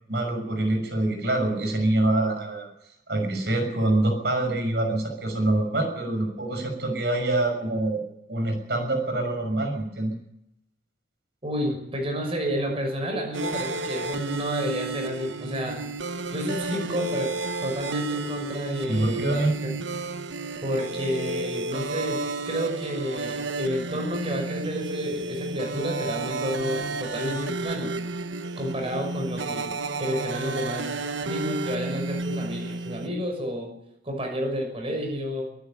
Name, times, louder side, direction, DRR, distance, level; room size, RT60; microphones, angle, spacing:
voice 1, 0.1-2.7 3.1-8.0 8.3-10.1 18.9-19.5, right 1 dB, 60° right, 5 dB, 6.4 m, -25 dB
voice 2, 11.4-15.8 16.3-17.3 17.6-19.7 20.6-22.2 22.5-28.0 28.6-29.6 30.0-33.7 34.0-35.4, equal, 30° right, 2 dB, 6.0 m, -30 dB
sound 1, 13.3-33.1, right 3 dB, 85° right, 1.0 m, -32 dB
24.5 x 12.5 x 9.0 m, 0.80 s
head